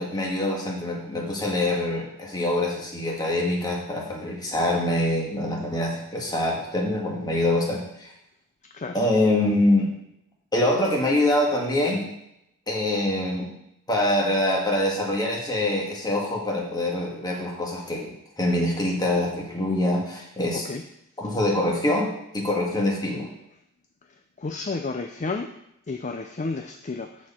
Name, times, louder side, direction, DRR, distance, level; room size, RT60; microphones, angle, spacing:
voice 1, 0.0-8.1 8.9-9.9 10.5-12.1 12.7-13.5 13.9-20.7 21.2-23.3, left 1 dB, 20° left, -1 dB, 1.7 m, -25 dB
voice 2, 24.4-25.5 25.9-27.1, left 3 dB, 35° left, 5 dB, 0.5 m, -31 dB
12.5 x 4.3 x 4.4 m, 0.80 s
head